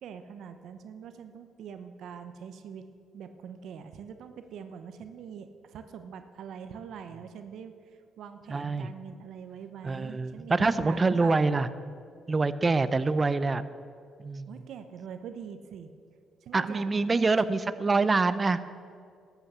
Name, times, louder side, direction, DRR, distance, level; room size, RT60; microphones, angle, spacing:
voice 1, 0.0-2.9 3.1-7.7 8.2-11.6 14.5-15.9 16.4-16.9, right 7 dB, 75° right, 9 dB, 0.8 m, -43 dB
voice 2, 8.5-8.9 9.8-11.7 12.3-13.6 14.2-14.5 16.5-18.6, right 3 dB, 30° right, 14 dB, 0.5 m, -25 dB
12.5 x 8.3 x 6.9 m, 2.2 s
cardioid pair, 90°, 0 cm